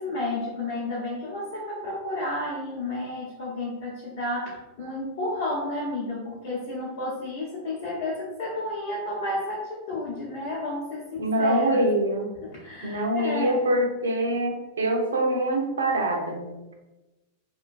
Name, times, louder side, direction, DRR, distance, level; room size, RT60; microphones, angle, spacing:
voice 1, 0.0-11.9 12.4-13.7, left 1 dB, 55° left, -6 dB, 0.6 m, -31 dB
voice 2, 11.2-12.3 12.8-16.6, right 1 dB, 70° right, 3 dB, 0.4 m, -24 dB
2.4 x 2.2 x 2.4 m, 1.1 s
figure-of-eight pair, 90°, 0 cm